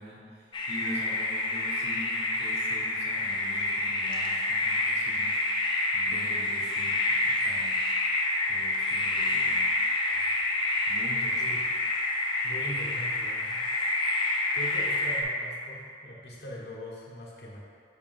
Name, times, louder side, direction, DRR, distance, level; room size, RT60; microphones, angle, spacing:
voice 1, 0.0-7.8 8.5-9.8 10.9-11.6, equal, 75° right, -5 dB, 1.3 m, -43 dB
sound 1, 0.5-15.2, left 2 dB, 25° left, 0.5 m, -28 dB
voice 2, 12.4-13.7 14.5-17.6, equal, 70° left, -5 dB, 1.2 m, -41 dB
6.5 x 2.9 x 5.3 m, 2.2 s
head